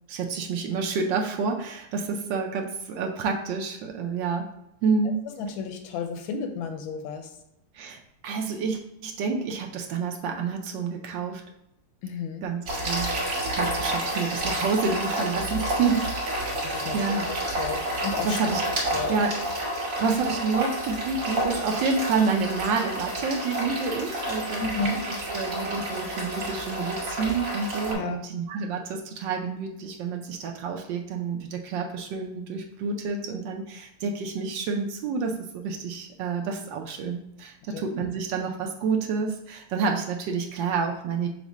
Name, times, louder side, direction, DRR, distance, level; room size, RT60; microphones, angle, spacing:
voice 1, 0.1-4.5 4.8-5.3 7.7-11.4 12.4-13.1 13.5-16.1 16.9-17.2 18.2-18.6 19.1-19.3 19.8-24.7 25.3-41.3, right 5 dB, 75° right, 2 dB, 1.1 m, -29 dB
voice 2, 5.4-7.3 12.0-12.4 16.6-18.4 18.9-19.2 24.6-25.0 27.9-28.2 37.7-37.8, left 5 dB, 80° left, 5 dB, 1.4 m, -32 dB
sound 1, 12.7-27.9, right 1 dB, 50° right, 2.0 m, -30 dB
6.0 x 2.1 x 3.9 m, 0.85 s
omnidirectional pair, 2.3 m